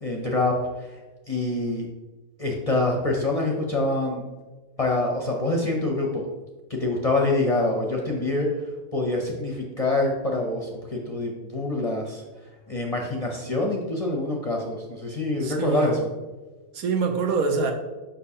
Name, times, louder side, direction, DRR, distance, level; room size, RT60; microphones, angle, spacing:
voice 1, 0.0-1.0 1.3-1.9 2.4-4.2 4.8-6.2 6.7-8.6 8.9-12.2 12.7-16.1, left 2 dB, 35° left, 0 dB, 0.6 m, -25 dB
voice 2, 15.4-16.0 16.7-17.7, right 4 dB, 85° right, 4 dB, 1.3 m, -25 dB
6.6 x 5.5 x 2.8 m, 1.2 s
omnidirectional pair, 1.5 m